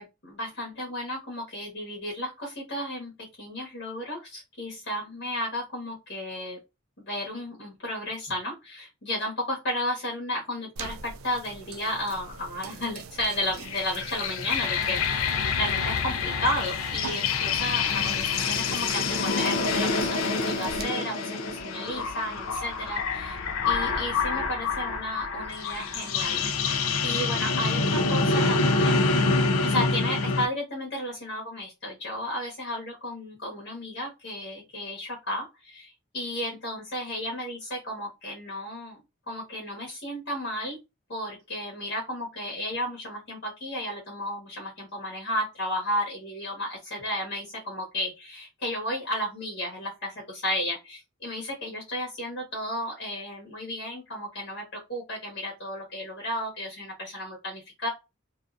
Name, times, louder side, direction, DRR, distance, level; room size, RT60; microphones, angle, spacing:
voice 1, 0.0-3.1 3.4-6.6 7.0-15.2 15.5-23.4 23.6-26.6 27.0-29.3 29.6-39.0 39.3-40.8 41.1-57.9, left 1 dB, 55° left, -3 dB, 1.0 m, -33 dB
sound 1, 10.8-20.8, right 5 dB, 80° right, 0.4 m, -43 dB
sound 2, 13.5-30.5, left 4 dB, 85° left, 0.4 m, -27 dB
2.5 x 2.4 x 2.3 m, 0.24 s
head